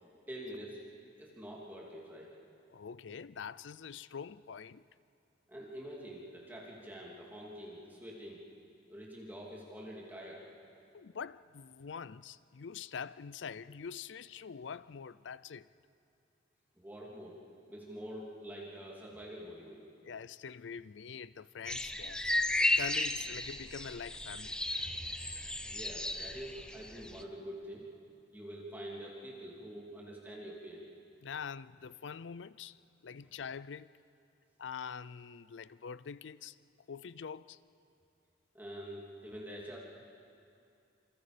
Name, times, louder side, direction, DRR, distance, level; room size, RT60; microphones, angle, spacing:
voice 1, 0.0-0.8 1.2-2.3 5.5-8.4 8.9-10.5 16.8-17.4 17.7-19.9 24.8-25.1 25.6-27.9 28.3-30.8 38.5-39.8, equal, 10° right, 2.9 m, -46 dB
voice 2, 2.7-4.8 10.9-15.7 20.0-22.2 22.6-24.6 31.2-32.8 33.0-34.0 34.6-36.6 36.9-37.6, left 6 dB, 90° left, 0.5 m, -44 dB
sound 1, 21.6-27.2, left 1 dB, 5° left, 0.7 m, -34 dB
27.5 x 27.0 x 5.1 m
head